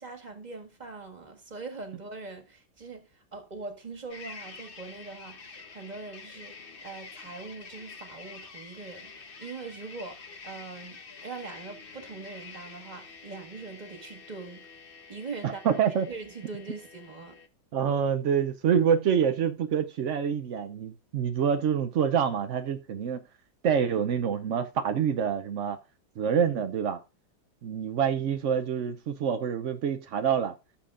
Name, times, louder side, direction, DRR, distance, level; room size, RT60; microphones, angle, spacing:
voice 1, 0.0-14.7 15.1-15.8 16.1-17.4, right 3 dB, 25° right, 1.7 m, -42 dB
sound 1, 4.1-17.5, left 4 dB, 40° left, 0.9 m, -47 dB
voice 2, 15.4-16.1 17.7-23.2 23.6-25.8 26.2-27.0 27.6-30.5, right 7 dB, 75° right, 0.7 m, -26 dB
15.0 x 7.2 x 2.5 m
omnidirectional pair, 2.1 m